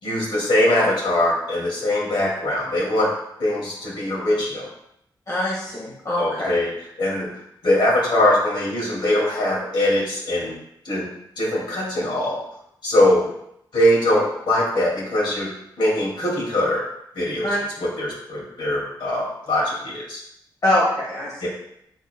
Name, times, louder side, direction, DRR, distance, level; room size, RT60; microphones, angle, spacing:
voice 1, 0.0-3.1 3.4-4.7 6.2-6.7 7.0-7.3 7.6-10.6 10.8-11.1 11.4-12.4 12.8-13.2 13.7-15.5 15.8-16.8 17.1-17.5 17.8-20.2 21.4-21.5, left 1 dB, 75° left, -4 dB, 2.3 m, -21 dB
voice 2, 5.3-6.5 17.4-17.6 20.6-21.5, left 1 dB, 45° left, -6 dB, 1.6 m, -23 dB
9.0 x 4.6 x 2.2 m, 0.75 s
wide cardioid pair, 160°, 8 cm